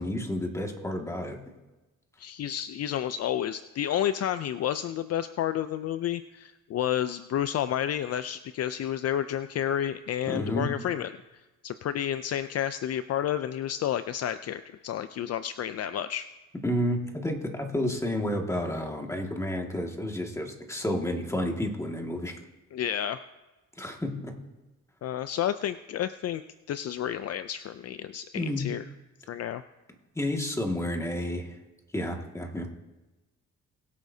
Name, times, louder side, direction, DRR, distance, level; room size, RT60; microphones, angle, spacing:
voice 1, 0.0-1.4 10.3-10.7 16.6-22.4 23.8-24.3 28.3-28.7 30.2-31.5 31.9-32.7, left 1 dB, 10° left, 1 dB, 2.0 m, -30 dB
voice 2, 2.2-11.1 11.6-16.3 22.7-23.2 25.0-26.4 26.7-28.8 29.3-29.6, left 10 dB, 55° left, 12 dB, 0.5 m, -30 dB
21.5 x 8.2 x 2.8 m, 1.1 s
cardioid pair, 90°, 30 cm